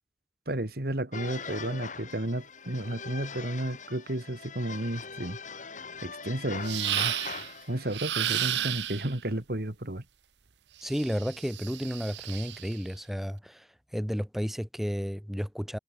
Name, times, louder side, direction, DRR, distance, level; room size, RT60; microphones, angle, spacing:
voice 1, 0.5-5.4 6.0-7.1 7.7-10.0, right 1 dB, 60° right, 2.2 m, -32 dB
sound 1, 1.1-8.0, left 5 dB, 45° left, 7.9 m, -41 dB
sound 2, 6.6-7.5 7.9-9.1 10.8-12.7, right 12 dB, 85° right, 1.0 m, -32 dB
voice 2, 10.8-13.7 13.9-15.8, equal, ahead, 8.0 m, -32 dB
head